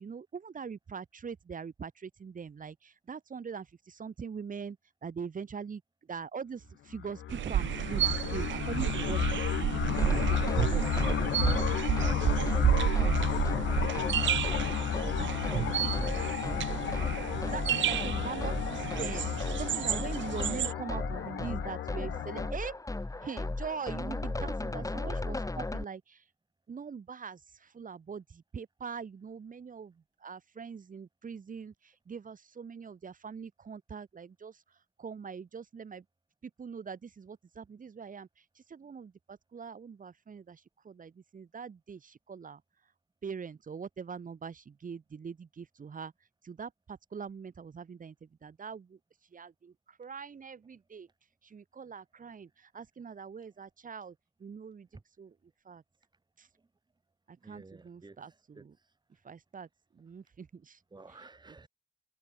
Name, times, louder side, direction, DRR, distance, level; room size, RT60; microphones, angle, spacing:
voice 1, 0.0-4.8 5.0-5.8 6.1-13.0 13.3-14.3 15.2-16.3 17.0-22.7 23.2-26.2 26.7-29.9 30.2-31.7 32.1-34.5 35.0-36.0 36.4-38.3 38.7-42.6 43.2-46.1 46.4-49.0 49.3-51.1 51.4-54.1 54.4-54.9 55.2-55.3 55.7-55.8 56.4-56.5 57.3-58.7 59.2-59.7 59.9-60.8, right 6 dB, 40° right, 7.7 m, -43 dB
sound 1, 6.9-22.5, left 12 dB, 75° left, 4.3 m, -33 dB
sound 2, 7.3-20.7, right 11 dB, 70° right, 2.3 m, -31 dB
sound 3, 10.0-25.8, left 2 dB, 15° left, 7.1 m, -37 dB
voice 2, 18.0-18.7 24.8-25.0 57.4-58.9 60.9-61.7, right 3 dB, 20° right, 5.5 m, -51 dB
cardioid pair, 90°, 20 cm